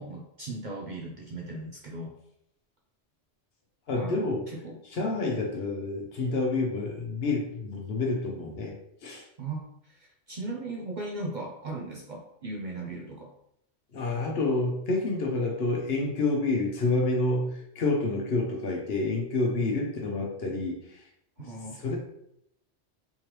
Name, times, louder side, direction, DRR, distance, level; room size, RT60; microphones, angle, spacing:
voice 1, 0.0-2.1 3.9-4.8 5.4-5.5 9.4-13.3 19.6-19.7 21.4-21.8, right 2 dB, 55° right, -1 dB, 0.6 m, -38 dB
voice 2, 3.9-4.5 4.9-8.7 9.0-9.2 13.9-21.0 21.4-22.0, left 2 dB, 60° left, 0 dB, 1.0 m, -28 dB
3.7 x 3.1 x 3.0 m, 0.76 s
omnidirectional pair, 1.2 m